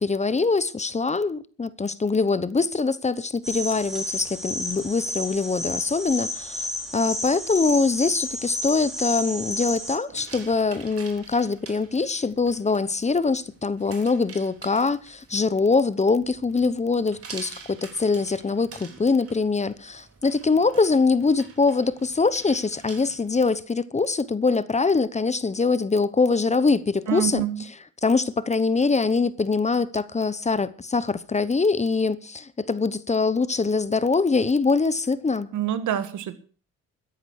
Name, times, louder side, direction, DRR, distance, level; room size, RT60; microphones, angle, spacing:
voice 1, 0.0-27.5 28.0-35.5, left 4 dB, 25° left, 1.0 m, -23 dB
sound 1, 3.4-10.0, left 1 dB, ahead, 4.5 m, -31 dB
sound 2, 10.1-23.6, right 5 dB, 50° right, 3.7 m, -46 dB
voice 2, 27.1-27.6 35.5-36.4, right 10 dB, 75° right, 1.8 m, -26 dB
14.0 x 10.0 x 6.5 m
cardioid pair, 90°, 30 cm